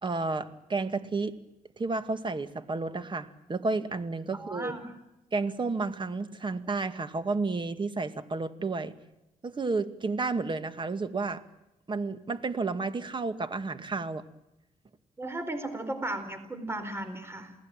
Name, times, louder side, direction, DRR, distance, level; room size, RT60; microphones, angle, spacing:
voice 1, 0.0-1.3 1.8-4.8 5.3-8.9 9.4-11.4 11.9-14.2, right 3 dB, 35° right, 10 dB, 2.1 m, -31 dB
voice 2, 4.3-4.9 15.2-17.5, right 1 dB, 20° right, 9 dB, 4.5 m, -35 dB
28.5 x 19.0 x 9.0 m, 0.93 s
cardioid pair, 95°, 14 cm